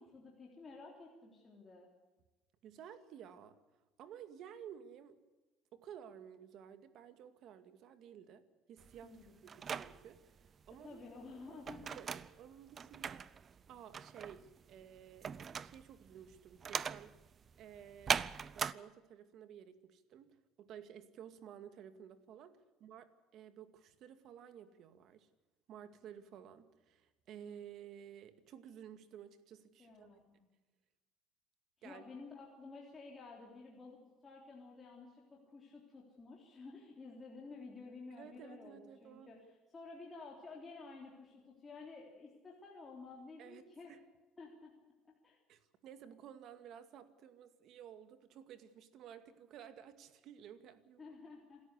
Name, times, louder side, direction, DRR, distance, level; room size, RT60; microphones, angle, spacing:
voice 1, 0.0-1.9 9.0-9.4 10.7-12.0 29.8-30.5 31.8-43.9 44.4-44.7 45.0-45.4 51.0-51.6, left 3 dB, 20° left, -2 dB, 3.4 m, -52 dB
voice 2, 2.6-3.6 4.0-5.2 5.7-11.0 11.4-11.6 11.9-12.1 12.4-13.4 13.7-17.2 17.6-18.3 18.5-23.1 23.3-25.3 25.7-30.2 31.8-32.0 38.2-39.3 43.4-44.0 45.5-51.2, right 9 dB, 50° right, 10 dB, 2.1 m, -54 dB
sound 1, 8.8-18.7, right 7 dB, 25° right, 0.6 m, -41 dB
27.5 x 13.5 x 8.3 m, 1.1 s
cardioid pair, 160°, 0 cm